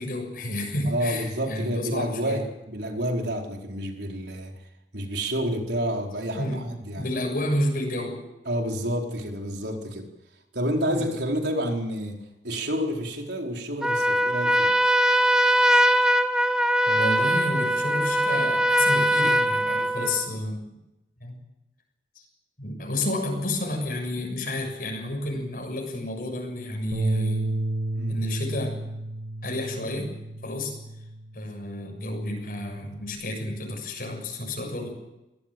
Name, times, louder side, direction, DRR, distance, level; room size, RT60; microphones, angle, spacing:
voice 1, 0.0-2.4 6.3-6.7 7.0-8.2 10.9-11.1 16.8-20.6 21.2-21.4 22.2-22.3 22.6-27.5 28.1-28.8 29.4-30.1 30.4-30.7 31.3-34.9, left 1 dB, 55° left, 2 dB, 6.9 m, -30 dB
voice 2, 0.8-4.6 4.9-7.0 8.5-10.1 10.5-14.7 27.9-28.2, equal, 75° right, 2 dB, 4.4 m, -29 dB
Trumpet, 13.8-20.3, equal, 5° right, 1.2 m, -21 dB
Bass guitar, 26.9-31.4 31.8-33.2, right 1 dB, 50° right, 5.2 m, -32 dB
25.0 x 18.0 x 7.8 m, 0.94 s
head